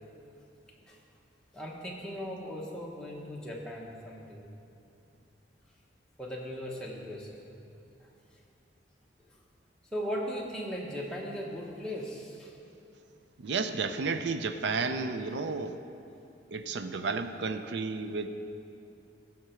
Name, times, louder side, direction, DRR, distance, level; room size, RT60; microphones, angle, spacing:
voice 1, 1.5-4.4 6.2-7.5 8.0-8.1 9.9-12.5, equal, 5° left, -3 dB, 1.0 m, -38 dB
voice 2, 13.4-15.8 16.5-18.3, right 4 dB, 65° right, 9 dB, 0.5 m, -32 dB
14.0 x 5.9 x 4.5 m, 2.7 s
head